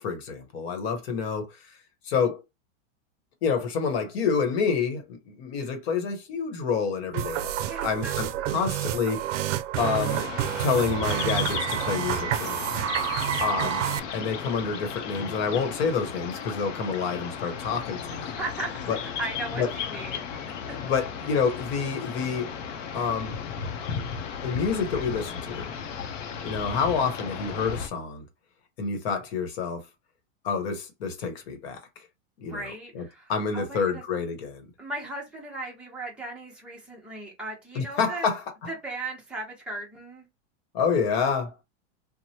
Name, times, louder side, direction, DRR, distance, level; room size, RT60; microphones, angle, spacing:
voice 1, 0.0-1.5 2.0-2.4 3.4-7.5 7.8-9.2 9.8-10.2 10.6-12.7 13.4-13.8 14.1-18.3 18.9-19.0 19.6-19.7 20.7-22.5 22.9-23.3 24.4-25.7 26.4-28.3 28.8-29.8 30.4-31.8 32.4-32.6 32.9-34.6 37.7-38.4 40.7-41.6, left 5 dB, 55° left, 1.1 m, -28 dB
sound 1, 7.1-14.0, right 11 dB, 75° right, 0.5 m, -29 dB
voice 2, 7.6-8.7 13.0-13.4 18.4-20.8 32.5-34.0 34.8-38.3 38.7-40.3, right 2 dB, 5° right, 0.7 m, -37 dB
sound 2, 9.8-27.9, left 7 dB, 85° left, 0.7 m, -35 dB
3.1 x 2.1 x 2.8 m
supercardioid pair, 165°, 36 cm